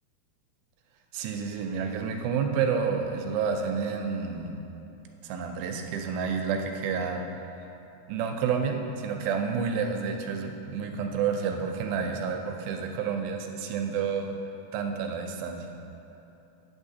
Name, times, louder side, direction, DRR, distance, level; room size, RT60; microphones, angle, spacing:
voice 1, 1.1-4.5 5.2-7.2 8.1-14.3 14.7-15.7, right 6 dB, 80° right, 4 dB, 2.3 m, -29 dB
8.8 x 8.1 x 2.7 m, 3.0 s
omnidirectional pair, 4.5 m